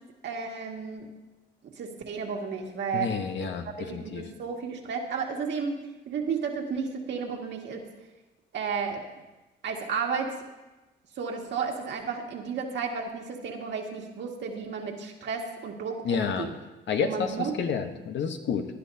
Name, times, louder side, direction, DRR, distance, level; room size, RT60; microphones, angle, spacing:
voice 1, 0.2-1.1 1.6-3.1 3.4-3.5 3.9-7.8 8.5-9.0 9.6-10.3 11.2-16.5 17.0-17.6, right 5 dB, 65° right, 0 dB, 2.0 m, -33 dB
voice 2, 2.9-4.3 16.0-16.5 16.9-18.7, left 6 dB, 65° left, 6 dB, 1.2 m, -30 dB
18.0 x 10.5 x 2.8 m, 1.1 s
cardioid pair, 90°, 20 cm